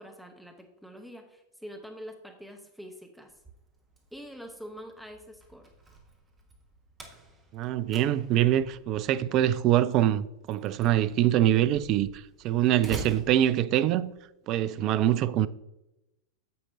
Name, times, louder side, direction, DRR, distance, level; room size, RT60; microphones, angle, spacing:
voice 1, 0.0-3.4 4.1-5.7, equal, ahead, 0.9 m, -45 dB
Slam, 3.3-14.2, right 2 dB, 20° right, 1.5 m, -47 dB
voice 2, 7.5-14.1 14.5-15.5, right 12 dB, 40° right, 0.4 m, -24 dB
9.4 x 7.8 x 2.7 m
figure-of-eight pair, 90°, 0 cm